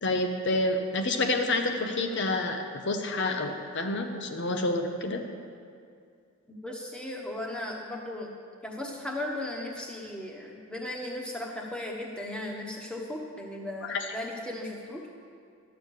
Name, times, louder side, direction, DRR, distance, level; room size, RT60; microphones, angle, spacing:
voice 1, 0.0-5.2 13.9-14.0, left 2 dB, 55° left, 5 dB, 0.8 m, -28 dB
voice 2, 6.5-8.3 8.6-15.1, left 1 dB, 5° left, -1 dB, 1.1 m, -36 dB
11.5 x 6.9 x 6.5 m, 2.3 s
head